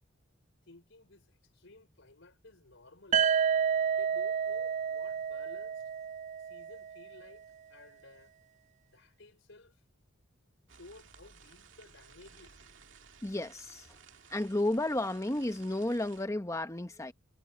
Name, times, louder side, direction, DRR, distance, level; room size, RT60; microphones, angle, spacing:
voice 1, 0.7-3.2 3.9-5.9 6.4-8.3 8.9-9.8 10.7-12.6, left 2 dB, 65° left, 5.0 m, -55 dB
sound 1, 3.1-7.0, right 7 dB, 35° right, 0.3 m, -30 dB
sound 2, 10.7-16.3, right 6 dB, 65° right, 2.5 m, -57 dB
voice 2, 13.2-13.9 14.3-17.1, left 1 dB, 15° left, 0.9 m, -32 dB
head